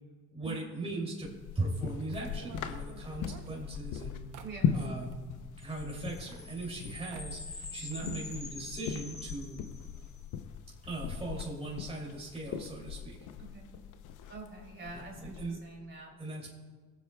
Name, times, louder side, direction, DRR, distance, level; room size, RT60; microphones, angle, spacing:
voice 1, 0.3-4.2 4.7-5.2 5.6-9.6 10.9-13.2 14.9-15.6 16.2-16.5, right 2 dB, 20° right, -4 dB, 2.6 m, -39 dB
sound 1, 1.2-15.5, left 7 dB, 85° left, 0.7 m, -39 dB
sound 2, 2.3-5.2 6.0-6.8 7.1-7.6 7.9-8.7 8.9-9.0 9.2-9.3 10.0-10.1 10.4-10.6, right 6 dB, 80° right, 0.9 m, -52 dB
voice 2, 4.4-4.9 8.0-8.2 13.4-13.7 14.3-16.1, right 4 dB, 40° right, -2 dB, 3.1 m, -46 dB
sound 3, 5.6-10.2, left 3 dB, 20° left, 1.0 m, -46 dB
21.0 x 8.1 x 2.3 m, 1.4 s
cardioid pair, 90°, 30 cm